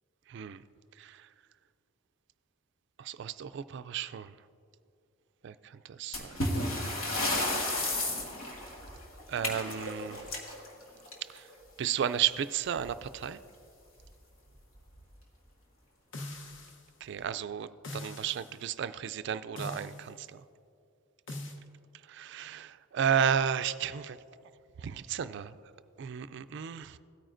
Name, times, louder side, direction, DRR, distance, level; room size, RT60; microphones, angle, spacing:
voice 1, 0.3-0.6 1.0-1.3 3.0-4.3 5.4-6.4 9.3-10.3 11.3-11.5 11.8-13.4 17.0-20.4 22.1-24.2 24.8-25.6 26.0-27.0, right 8 dB, 55° right, 13 dB, 0.3 m, -33 dB
sound 1, 6.1-11.5 12.8-12.9 13.2-13.3 14.0-14.1 14.8-15.0, left 1 dB, 90° left, 1.6 m, -33 dB
sound 2, 16.1-16.9 17.8-18.5 19.6-20.1 21.3-21.6, left 1 dB, 60° left, 0.9 m, -42 dB
17.0 x 9.1 x 2.5 m, 2.6 s
head